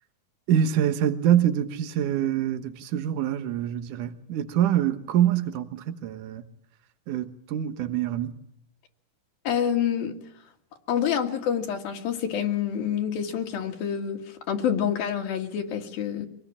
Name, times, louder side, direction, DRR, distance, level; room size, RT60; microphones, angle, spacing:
voice 1, 0.5-6.4 7.1-8.3, right 10 dB, 65° right, 2.7 m, -25 dB
voice 2, 9.5-10.2 10.9-16.3, left 8 dB, 85° left, 3.7 m, -27 dB
25.5 x 18.5 x 8.7 m
omnidirectional pair, 4.1 m